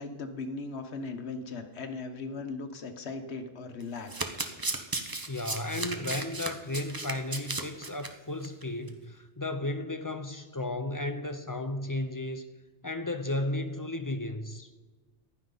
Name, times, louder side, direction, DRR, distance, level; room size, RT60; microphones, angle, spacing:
voice 1, 0.0-4.3 4.5-5.0, left 3 dB, 70° left, 7 dB, 1.3 m, -38 dB
Domestic sounds home sounds, 3.8-8.1 8.4-8.6 8.9-9.0, right 2 dB, 20° right, 0.7 m, -35 dB
voice 2, 5.3-12.5 12.8-14.7, left 2 dB, 25° left, 8 dB, 0.5 m, -34 dB
15.0 x 11.0 x 3.9 m, 1.3 s
omnidirectional pair, 1.2 m